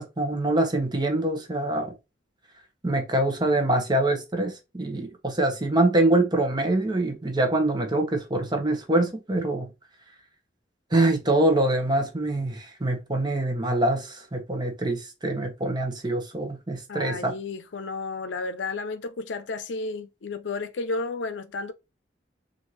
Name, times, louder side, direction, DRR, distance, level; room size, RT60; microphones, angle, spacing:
voice 1, 0.0-1.9 2.8-9.7 10.9-17.4, right 1 dB, 25° right, 0.9 m, -24 dB
voice 2, 16.9-21.7, left 3 dB, 85° left, 0.6 m, -32 dB
4.4 x 2.6 x 3.1 m
head